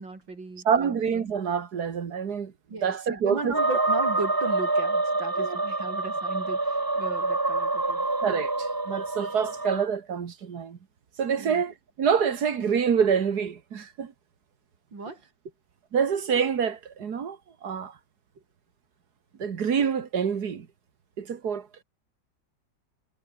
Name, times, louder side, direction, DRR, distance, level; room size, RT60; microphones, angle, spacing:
voice 1, 0.0-0.9 2.7-8.1 11.3-11.6 14.9-15.2, right 3 dB, 85° right, 5.8 m, -36 dB
voice 2, 0.7-2.5 2.8-3.5 5.4-5.6 8.2-10.8 11.2-14.1 15.9-18.0 19.4-20.7 21.2-21.8, right 7 dB, 60° right, 2.1 m, -26 dB
sound 1, 3.5-9.9, right 2 dB, 15° right, 0.8 m, -27 dB
omnidirectional pair, 2.0 m